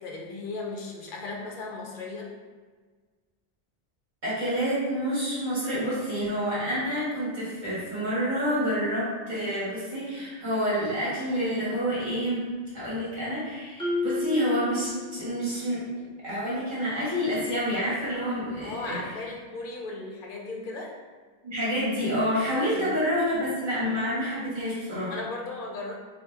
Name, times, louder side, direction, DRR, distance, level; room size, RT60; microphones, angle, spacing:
voice 1, 0.0-2.3 18.6-20.9 22.7-23.0 25.1-26.0, left 3 dB, 55° left, -1 dB, 0.8 m, -36 dB
voice 2, 4.2-12.5 12.7-15.9 16.2-19.0 21.4-25.1, equal, 45° right, -10 dB, 1.7 m, -28 dB
Marimba xylophone, 13.8-15.6, left 2 dB, 5° left, 0.6 m, -31 dB
3.2 x 2.8 x 3.3 m, 1.4 s
omnidirectional pair, 1.1 m